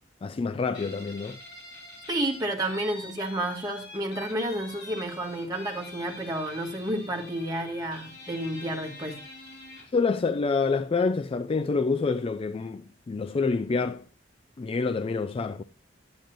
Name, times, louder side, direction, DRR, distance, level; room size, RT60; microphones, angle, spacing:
voice 1, 0.2-1.4 9.9-14.0 14.6-15.6, left 4 dB, 30° left, 0.3 m, -27 dB
Guitar, 0.7-10.0, left 2 dB, 65° left, 5.0 m, -45 dB
voice 2, 2.1-9.2, right 1 dB, 20° right, 1.7 m, -31 dB
9.3 x 8.8 x 2.5 m
head